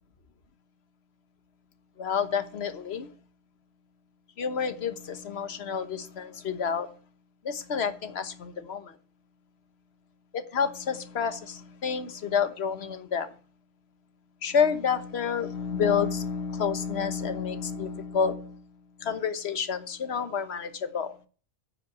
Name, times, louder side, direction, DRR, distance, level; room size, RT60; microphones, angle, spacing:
voice 1, 2.0-3.1 4.4-6.9 7.4-8.9 10.3-13.3 14.4-18.7 19.0-21.1, left 6 dB, 60° left, 1.3 m, -29 dB
9.4 x 5.7 x 7.8 m
omnidirectional pair, 1.2 m